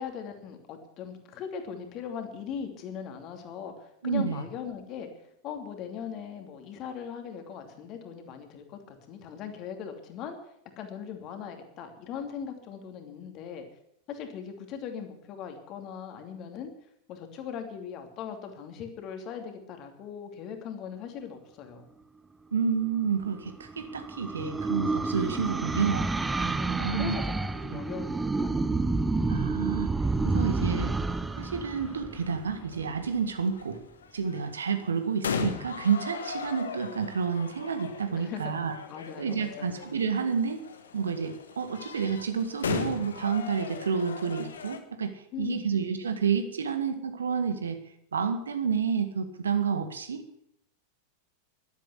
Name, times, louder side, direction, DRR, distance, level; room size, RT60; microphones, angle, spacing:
voice 1, 0.0-5.1 5.4-10.3 10.8-13.6 14.1-16.7 17.1-21.9 26.6-28.8 34.9-35.1 38.2-38.5 38.9-39.9 45.3-45.7, left 7 dB, 35° left, 5 dB, 2.7 m, -39 dB
voice 2, 4.0-4.5 22.5-26.1 26.8-27.2 27.7-27.8 29.3-29.9 30.2-31.0 31.4-33.8 34.1-38.7 39.2-40.6 40.9-47.8 48.1-50.2, right 6 dB, 70° right, 9 dB, 1.8 m, -29 dB
sound 1, 23.3-32.8, right 3 dB, 10° right, 0.7 m, -29 dB
sound 2, 30.1-44.8, left 6 dB, 65° left, 1.5 m, -39 dB
12.0 x 11.5 x 8.2 m, 0.73 s
figure-of-eight pair, 90°, 0 cm